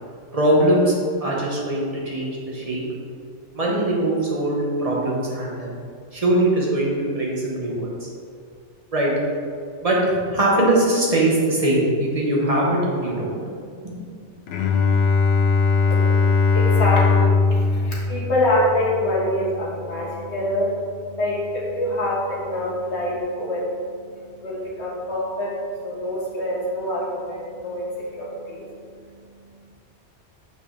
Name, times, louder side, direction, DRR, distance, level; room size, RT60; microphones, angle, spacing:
voice 1, 0.3-0.9 1.2-2.8 3.5-5.8 6.1-8.1 8.9-9.1 9.8-13.4, right 1 dB, 30° right, -4 dB, 1.2 m, -21 dB
Bowed string instrument, 14.5-20.2, left 4 dB, 90° left, 1.0 m, -20 dB
voice 2, 15.9-29.7, left 1 dB, 70° left, -7 dB, 1.9 m, -26 dB
6.0 x 5.9 x 3.3 m, 2.3 s
omnidirectional pair, 1.2 m